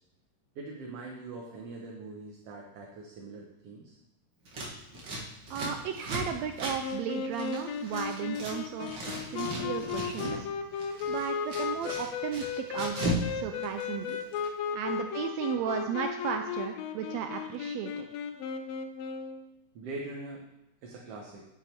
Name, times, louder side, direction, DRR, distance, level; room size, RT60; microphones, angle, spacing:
voice 1, 0.6-4.0 14.6-15.1 15.4-15.9 19.8-20.4 20.8-21.5, right 3 dB, 65° right, -1 dB, 1.8 m, -43 dB
Scissors, 4.4-8.5 8.8-10.4 10.7-13.3 13.5-14.5, equal, 40° right, 2.1 m, -36 dB
voice 2, 5.5-10.5 11.1-14.2 14.7-18.1, right 8 dB, 80° right, 6 dB, 1.6 m, -35 dB
sound 1, 6.8-19.4, left 6 dB, 75° left, 1.7 m, -35 dB
9.3 x 6.9 x 4.5 m, 0.91 s
omnidirectional pair, 3.5 m